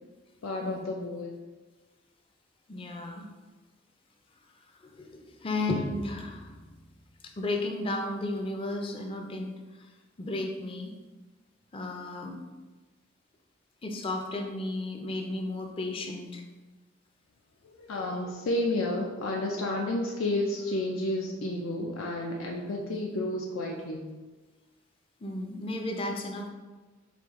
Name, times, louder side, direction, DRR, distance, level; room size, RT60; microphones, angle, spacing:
voice 1, 0.4-1.4 17.6-24.1, left 1 dB, 85° left, 0 dB, 0.4 m, -31 dB
voice 2, 2.7-3.2 4.8-6.7 7.2-9.5 9.8-9.9 10.2-10.9 11.7-12.4 13.8-16.4 22.6-22.8 25.2-26.5, left 2 dB, 25° left, 3 dB, 0.4 m, -34 dB
4.8 x 2.5 x 3.5 m, 1.3 s
head